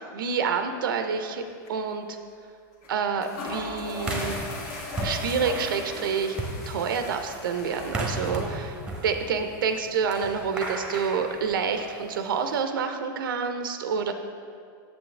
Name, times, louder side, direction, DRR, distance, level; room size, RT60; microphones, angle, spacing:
voice 1, 0.0-1.4 1.7-2.2 2.9-4.4 5.0-6.4 6.7-8.8 9.0-14.1, right 6 dB, 90° right, 7 dB, 0.6 m, -28 dB
sound 1, 1.2-1.4 1.7-1.8 2.8-2.9 3.2-12.6, left 2 dB, 50° left, 1.5 m, -39 dB
sound 2, 4.1-12.1, right 1 dB, 10° right, 0.9 m, -35 dB
7.0 x 7.0 x 3.2 m, 2.2 s
supercardioid pair, 140°, 11 cm